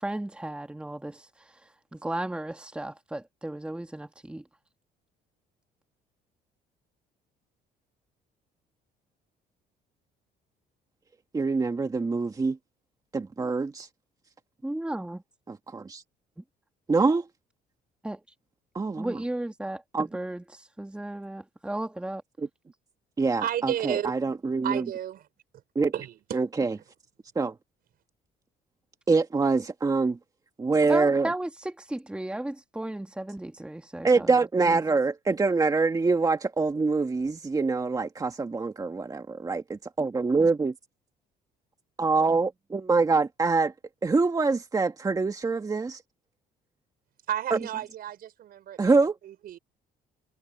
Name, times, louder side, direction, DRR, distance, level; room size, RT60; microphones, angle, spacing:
voice 1, 0.0-4.4 14.6-15.2 16.4-16.5 18.0-18.2 19.0-22.2 30.9-34.8, right 1 dB, 5° right, 1.6 m, -35 dB
voice 2, 11.3-12.6 13.1-13.9 15.5-16.0 16.9-17.2 18.8-19.2 19.9-20.1 23.2-24.8 25.8-25.9 26.3-26.7 27.4-27.5 29.1-30.2 30.6-31.3 34.0-40.7 42.0-43.7 44.0-46.0 47.5-47.6 48.8-49.2, right 4 dB, 20° right, 1.8 m, -25 dB
voice 3, 23.4-24.1 24.6-25.3 25.9-26.4 47.3-49.0 49.2-49.6, right 11 dB, 60° right, 4.9 m, -32 dB
cardioid pair, 110°, 17 cm